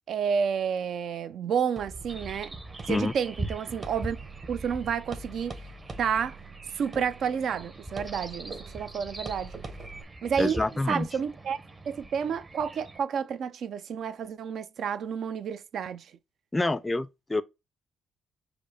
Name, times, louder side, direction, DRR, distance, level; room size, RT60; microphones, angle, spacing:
voice 1, 0.1-2.6 2.9-4.2 4.5-5.7 6.0-6.4 6.7-9.5 10.2-11.6 11.9-16.1, right 7 dB, 65° right, 0.4 m, -30 dB
sound 1, 1.8-10.0, right 3 dB, 40° right, 1.0 m, -44 dB
sound 2, 2.1-13.0, right 1 dB, 20° right, 0.7 m, -42 dB
voice 2, 10.4-11.1 16.5-17.4, left 2 dB, 15° left, 0.4 m, -27 dB
5.0 x 2.0 x 4.7 m
cardioid pair, 90°, 0 cm